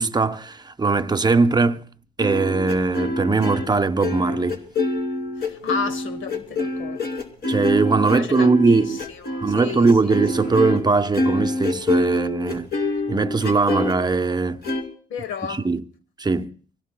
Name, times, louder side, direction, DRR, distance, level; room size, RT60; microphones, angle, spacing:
voice 1, 0.0-1.9 2.2-4.6 7.5-9.0 9.4-12.7 13.1-14.6 15.5-15.8 16.2-16.5, right 3 dB, 20° right, 0.7 m, -20 dB
sound 1, 2.2-10.9 11.1-13.9 14.6-14.8, left 1 dB, 55° left, 2.5 m, -26 dB
voice 2, 5.4-7.0 8.1-10.2 15.1-15.7, left 5 dB, 80° left, 1.1 m, -32 dB
25.0 x 16.5 x 2.2 m
cardioid pair, 90°, 20 cm